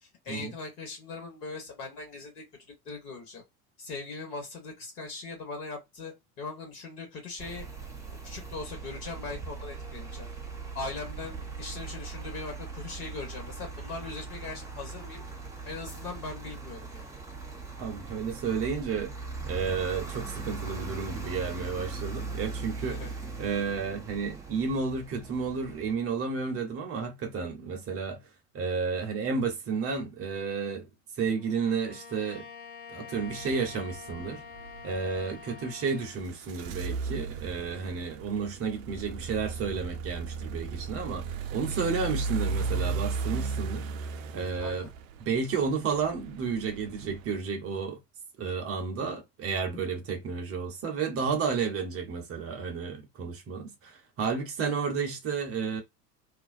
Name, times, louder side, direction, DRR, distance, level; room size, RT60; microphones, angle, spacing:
voice 1, 0.0-2.4 2.8-3.4 3.8-7.6 8.2-10.3 10.7-15.2 15.6-17.1 22.9-23.1 44.6-44.9, left 3 dB, 70° left, 1.3 m, -40 dB
sound 1, 7.4-25.9, right 4 dB, 5° right, 0.5 m, -40 dB
voice 2, 17.8-19.1 19.5-23.0 23.4-28.2 28.5-30.9 31.2-32.5 32.9-34.4 34.8-44.9 45.2-48.0 48.4-55.8, right 5 dB, 30° right, 0.8 m, -32 dB
Bowed string instrument, 31.4-36.2, left 6 dB, 40° left, 1.1 m, -46 dB
sound 2, 33.1-47.4, right 4 dB, 55° right, 0.5 m, -36 dB
2.6 x 2.1 x 2.6 m
figure-of-eight pair, 80°, 48 cm